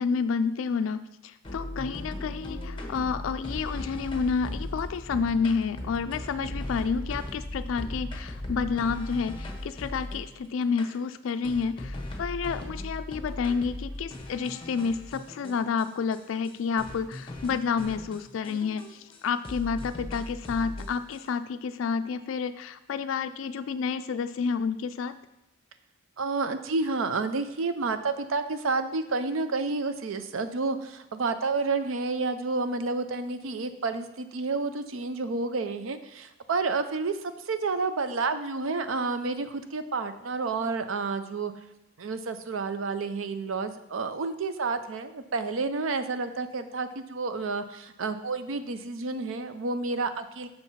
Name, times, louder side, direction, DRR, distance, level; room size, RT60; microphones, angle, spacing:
voice 1, 0.0-25.1, left 5 dB, 70° left, 10 dB, 0.3 m, -30 dB
sound 1, 1.4-10.3 10.8-10.9 11.4-15.8 16.1-16.2 16.4-16.5 16.8-19.2 19.4-21.2, left 1 dB, 25° left, 0.9 m, -38 dB
voice 2, 26.2-41.5 42.0-50.5, right 4 dB, 75° right, 10 dB, 0.5 m, -30 dB
6.3 x 4.5 x 5.7 m, 0.91 s
head